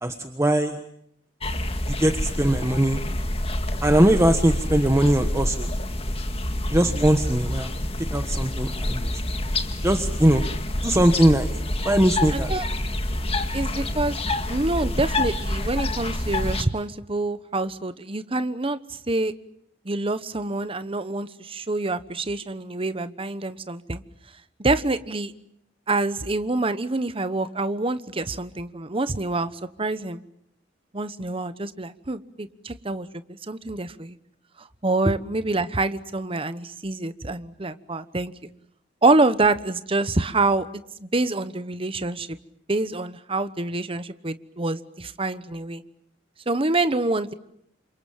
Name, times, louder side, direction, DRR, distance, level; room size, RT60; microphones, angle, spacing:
voice 1, 0.0-0.8 1.9-3.0 3.8-5.7 6.7-7.7 8.1-9.0 9.8-10.4 10.8-11.5 11.8-12.5, right 1 dB, 15° right, 6 dB, 1.3 m, -20 dB
sound 1, 1.4-16.6, left 1 dB, 30° left, 2.0 m, -27 dB
voice 2, 12.3-12.7 13.5-14.2 14.5-19.3 19.8-24.0 24.6-25.3 25.9-30.2 30.9-34.2 34.6-38.3 39.0-40.7 41.0-42.4 42.7-45.8 46.5-47.3, right 2 dB, 30° right, 13 dB, 1.1 m, -26 dB
29.0 x 26.0 x 7.4 m, 0.73 s
head